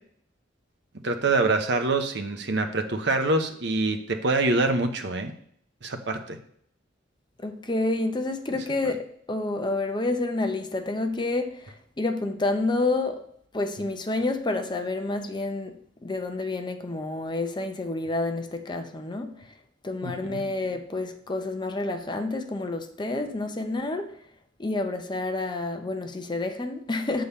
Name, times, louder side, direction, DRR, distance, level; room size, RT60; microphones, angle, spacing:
voice 1, 1.0-5.3 5.8-6.4 20.0-20.4, right 2 dB, 65° right, 1.0 m, -25 dB
voice 2, 7.4-13.2 13.5-15.7 16.0-19.5 19.8-24.1 24.6-27.2, left 2 dB, 25° left, 0.7 m, -29 dB
8.4 x 3.9 x 6.8 m
head